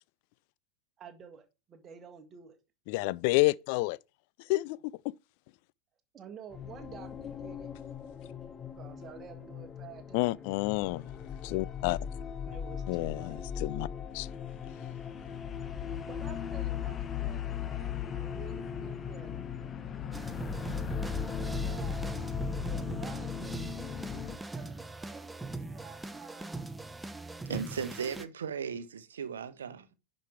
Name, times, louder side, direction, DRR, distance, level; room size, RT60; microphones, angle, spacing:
voice 1, 1.0-2.6 6.1-7.7 8.8-10.4 12.4-13.5 14.6-14.8 16.1-19.5 21.2-22.0 22.7-24.1 24.5-26.6 27.5-27.6 29.7-29.9, right 7 dB, 25° right, 1.7 m, -51 dB
voice 2, 2.9-4.0 4.5-4.8 5.0-5.1 10.1-11.1 11.4-12.0 12.9-13.9 14.1-14.3, left 21 dB, 45° left, 0.3 m, -29 dB
sound 1, 6.5-24.4, left 8 dB, 25° left, 0.8 m, -38 dB
sound 2, 20.1-28.3, right 2 dB, 10° right, 0.7 m, -40 dB
voice 3, 27.4-29.9, right 7 dB, 65° right, 0.9 m, -37 dB
10.5 x 5.3 x 4.5 m
figure-of-eight pair, 90°, 0 cm